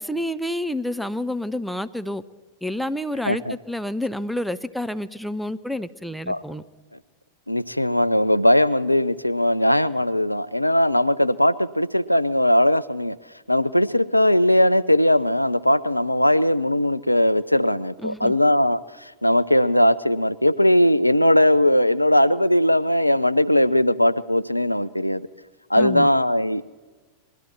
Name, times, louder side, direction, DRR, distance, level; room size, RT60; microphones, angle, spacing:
voice 1, 0.0-2.2 2.6-6.6 18.0-18.3 25.8-26.1, left 1 dB, ahead, 10 dB, 0.5 m, -29 dB
voice 2, 7.5-13.2 13.5-25.3 25.7-26.6, left 1 dB, 90° left, 15 dB, 0.3 m, -19 dB
20.5 x 12.0 x 4.4 m, 1.3 s
figure-of-eight pair, 90°, 0 cm